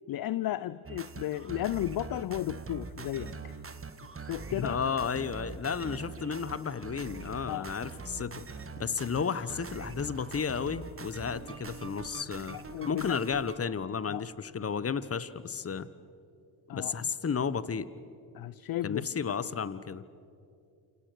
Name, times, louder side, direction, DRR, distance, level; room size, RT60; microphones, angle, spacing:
voice 1, 0.1-3.6 4.2-4.8 7.5-7.7 12.5-13.2 14.1-14.2 14.9-15.0 16.7-17.1 18.3-19.1, left 13 dB, 45° left, 17 dB, 0.7 m, -34 dB
sound 1, 0.9-13.6, right 4 dB, 25° right, 1.9 m, -43 dB
voice 2, 4.6-8.5 8.8-12.6 12.9-15.9 16.7-17.9 18.8-20.0, left 6 dB, 30° left, 16 dB, 1.3 m, -33 dB
28.5 x 27.0 x 6.5 m, 2.6 s
hypercardioid pair, 55°, 49 cm